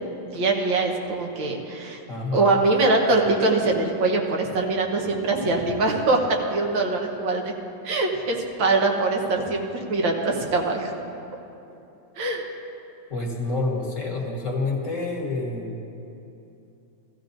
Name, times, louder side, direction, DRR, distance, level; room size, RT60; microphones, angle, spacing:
voice 1, 0.3-2.0 2.3-7.4 7.8-10.9 12.2-12.5, right 3 dB, 85° right, 1 dB, 1.9 m, -23 dB
voice 2, 2.1-2.6 13.1-15.8, left 2 dB, 50° left, 0 dB, 1.4 m, -28 dB
15.0 x 15.0 x 2.6 m, 2.8 s
omnidirectional pair, 2.0 m